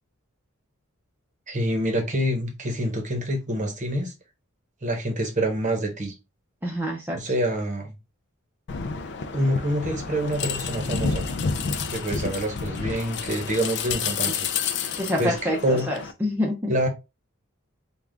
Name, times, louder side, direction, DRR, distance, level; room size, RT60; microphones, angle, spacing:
voice 1, 1.5-4.1 4.8-6.1 7.1-8.0 9.3-11.2 11.9-14.5 15.2-15.9 16.7-16.9, right 1 dB, 35° right, 0.9 m, -26 dB
voice 2, 6.6-7.2 15.0-16.7, left 1 dB, 10° right, 0.6 m, -27 dB
sound 1, 8.7-16.1, left 5 dB, 55° left, 0.4 m, -30 dB
3.7 x 2.4 x 3.3 m
head